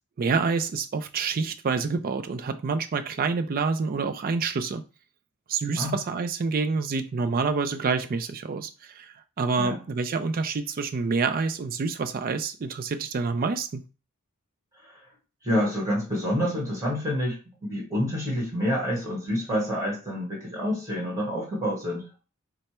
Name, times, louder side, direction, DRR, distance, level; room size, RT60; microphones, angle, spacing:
voice 1, 0.2-4.8 5.5-13.8, right 4 dB, 40° right, 0.4 m, -27 dB
voice 2, 15.4-22.1, equal, 15° right, 1.5 m, -28 dB
3.3 x 2.0 x 4.2 m
head